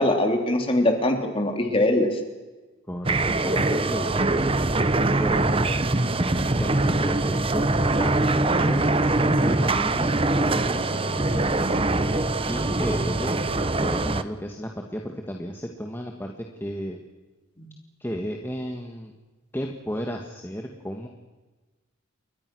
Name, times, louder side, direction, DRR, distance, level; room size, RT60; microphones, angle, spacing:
voice 1, 0.0-2.2 17.6-17.7, left 1 dB, 25° left, 4 dB, 3.6 m, -22 dB
voice 2, 2.9-4.5 4.7-5.9 6.6-7.7 8.0-8.8 9.2-12.2 12.5-13.4 13.8-17.0 18.0-19.1 19.5-21.1, equal, 10° left, 2 dB, 1.8 m, -33 dB
sound 1, 3.0-14.2, right 2 dB, 25° right, 0.9 m, -23 dB
29.5 x 23.5 x 6.4 m, 1.2 s
head